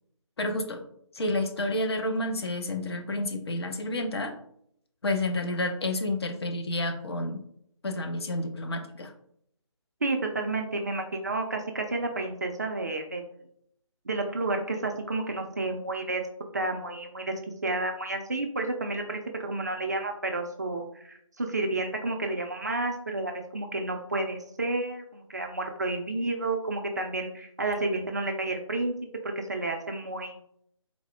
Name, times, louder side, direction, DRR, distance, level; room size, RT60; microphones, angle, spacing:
voice 1, 0.4-0.8 1.1-4.3 5.0-7.4 7.8-9.1, left 1 dB, 50° left, 5 dB, 0.6 m, -30 dB
voice 2, 10.0-13.2 14.1-16.2 16.5-17.3 17.6-28.9 29.2-30.4, right 2 dB, 30° right, 3 dB, 0.3 m, -31 dB
4.2 x 2.0 x 3.4 m, 0.68 s
figure-of-eight pair, 155°, 17 cm